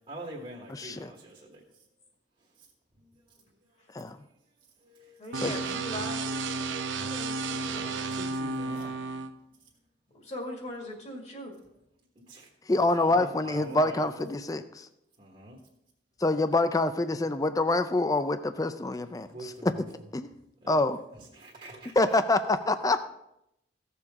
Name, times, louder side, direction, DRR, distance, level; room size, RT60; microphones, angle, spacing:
voice 1, 0.1-1.6 4.9-6.0 7.6-8.9 12.3-12.5 12.9-14.3 15.2-15.6 19.3-19.9 20.6-20.9 21.2-21.9, right 1 dB, 35° right, -2 dB, 1.5 m, -45 dB
voice 2, 0.7-1.1 3.9-4.2 5.3-5.6 12.7-14.9 16.2-19.7 20.1-20.3 20.7-21.0 22.0-23.0, left 2 dB, 20° left, 11 dB, 0.4 m, -26 dB
voice 3, 5.2-8.3 10.2-11.5, left 1 dB, 35° left, 1 dB, 2.1 m, -41 dB
sound 1, 5.3-9.3, right 3 dB, 75° right, 0.7 m, -32 dB
15.5 x 6.9 x 3.6 m, 0.82 s
head